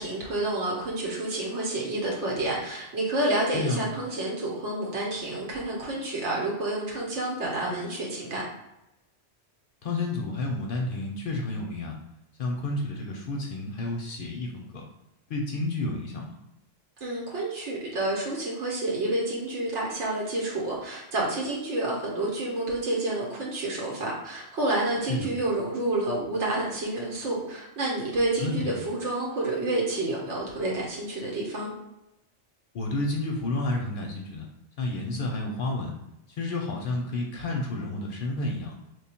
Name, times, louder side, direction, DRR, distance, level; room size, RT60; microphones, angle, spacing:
voice 1, 0.0-8.4 17.0-31.7, right 2 dB, 85° right, -3 dB, 1.1 m, -29 dB
voice 2, 9.8-12.0 12.4-14.8 15.3-16.2 25.1-25.3 28.4-28.7 32.7-34.5 34.8-35.9 36.4-38.7, left 2 dB, 60° left, 0 dB, 0.6 m, -30 dB
3.2 x 2.2 x 4.3 m, 0.90 s
omnidirectional pair, 1.2 m